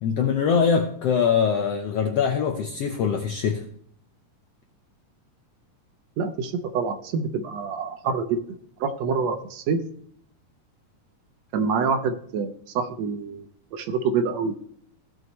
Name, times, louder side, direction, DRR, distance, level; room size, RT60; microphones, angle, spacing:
voice 1, 0.0-3.6, left 6 dB, 80° left, 4 dB, 1.4 m, -23 dB
voice 2, 6.2-8.4 8.8-9.8 11.5-13.4 13.7-14.5, right 5 dB, 70° right, 7 dB, 1.6 m, -26 dB
16.0 x 6.3 x 3.1 m, 0.65 s
omnidirectional pair, 3.9 m